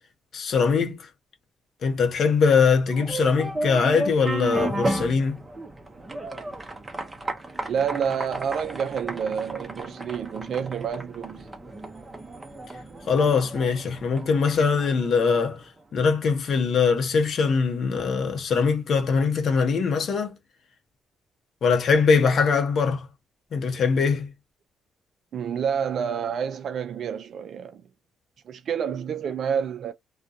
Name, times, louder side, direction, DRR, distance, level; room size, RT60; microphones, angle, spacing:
voice 1, 0.3-1.1 1.8-5.4 13.1-15.6 15.9-20.3 21.6-23.1 23.5-24.3, left 5 dB, 60° left, 0.7 m, -22 dB
sound 1, 2.9-15.6, right 2 dB, 20° right, 0.7 m, -34 dB
voice 2, 7.7-11.5 25.3-27.8 28.5-29.9, right 7 dB, 60° right, 0.3 m, -28 dB
2.4 x 2.1 x 2.6 m
cardioid pair, 90°, 0 cm